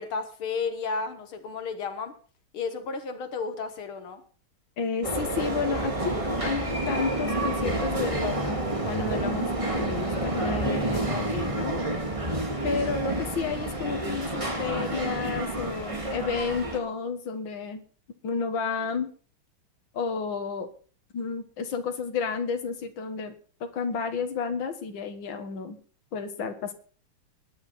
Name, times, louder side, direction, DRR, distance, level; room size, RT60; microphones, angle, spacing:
voice 1, 0.0-2.1 2.5-4.2, left 4 dB, 80° left, 7 dB, 2.3 m, -32 dB
voice 2, 4.8-11.8 12.6-17.8 18.2-19.1 19.9-20.7 21.1-23.3 23.6-25.8 26.1-26.7, left 5 dB, 65° left, 6 dB, 2.3 m, -31 dB
sound 1, 5.0-16.8, right 1 dB, 15° right, 2.1 m, -29 dB
21.0 x 10.5 x 4.3 m, 0.40 s
omnidirectional pair, 2.3 m